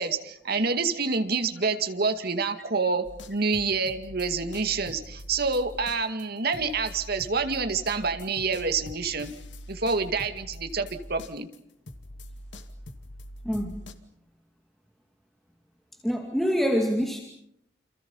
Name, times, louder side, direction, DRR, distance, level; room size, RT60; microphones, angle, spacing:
voice 1, 0.0-9.3 9.7-11.5, right 4 dB, 60° right, 8 dB, 2.2 m, -27 dB
sound 1, 3.0-11.6 11.9-13.9, left 1 dB, 75° left, 2.2 m, -43 dB
voice 2, 13.4-13.8 16.0-17.2, equal, ahead, 2 dB, 2.3 m, -25 dB
29.0 x 28.0 x 5.6 m, 0.72 s
head